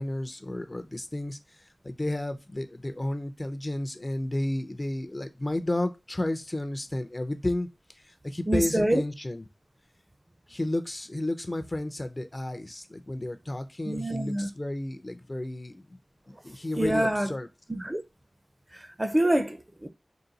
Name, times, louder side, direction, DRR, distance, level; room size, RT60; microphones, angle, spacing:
voice 1, 0.0-7.7 7.9-9.5 10.5-16.0 16.3-17.5, left 1 dB, 30° left, 0.5 m, -32 dB
voice 2, 8.5-9.0 13.8-14.5 16.8-17.3 17.7-18.0 18.7-19.9, right 1 dB, 20° right, 0.5 m, -26 dB
3.8 x 2.3 x 3.9 m
wide cardioid pair, 80°, 0 cm